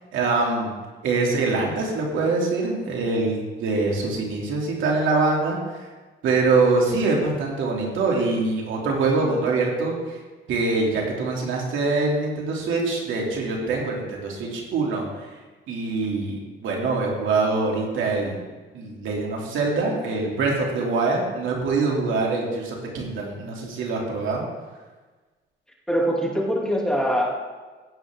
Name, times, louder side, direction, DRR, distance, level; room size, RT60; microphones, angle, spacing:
voice 1, 0.1-0.7 1.0-5.9 6.2-10.2 10.5-15.3 15.7-18.5 18.7-24.4, right 3 dB, 80° right, -1 dB, 2.6 m, -24 dB
voice 2, 25.9-27.3, equal, 5° left, -2 dB, 2.4 m, -23 dB
15.5 x 8.7 x 3.6 m, 1.3 s
cardioid pair, 90°, 20 cm